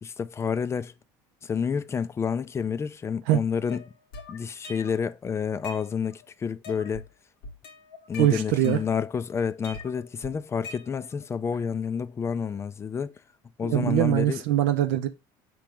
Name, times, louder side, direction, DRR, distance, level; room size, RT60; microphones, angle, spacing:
voice 1, 0.0-0.9 1.4-3.8 4.3-7.0 8.1-13.1 13.6-14.4, left 6 dB, 25° left, 0.4 m, -29 dB
sound 1, 3.7-5.1 5.4-6.3 6.6-7.1 7.4-9.2 9.6-11.3, left 3 dB, 90° left, 1.3 m, -43 dB
voice 2, 8.2-8.8 13.6-15.1, right 13 dB, 80° right, 0.5 m, -22 dB
4.9 x 3.1 x 3.5 m
supercardioid pair, 95°, 11 cm